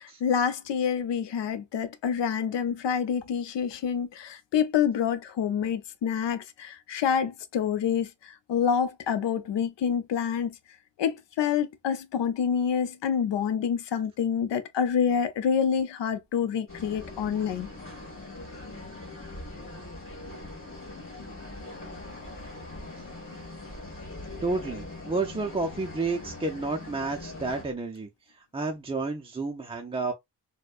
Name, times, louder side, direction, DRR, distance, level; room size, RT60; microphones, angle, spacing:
voice 1, 0.0-10.5 11.0-17.7, left 7 dB, 90° left, 0.6 m, -27 dB
sound 1, 16.7-27.6, left 2 dB, 30° left, 2.0 m, -42 dB
voice 2, 24.4-28.1 28.5-30.1, right 3 dB, 15° right, 0.4 m, -30 dB
4.3 x 2.2 x 2.4 m
wide cardioid pair, 135°, 41 cm